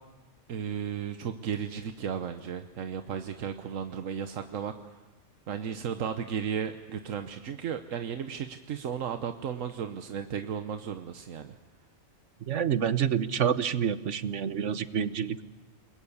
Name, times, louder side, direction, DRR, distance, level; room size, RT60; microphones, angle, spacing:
voice 1, 0.5-5.0 5.5-11.6, right 7 dB, 90° right, 8 dB, 1.3 m, -34 dB
voice 2, 12.5-15.4, right 8 dB, 70° right, 14 dB, 1.3 m, -28 dB
28.5 x 21.5 x 7.2 m, 1.3 s
omnidirectional pair, 1.3 m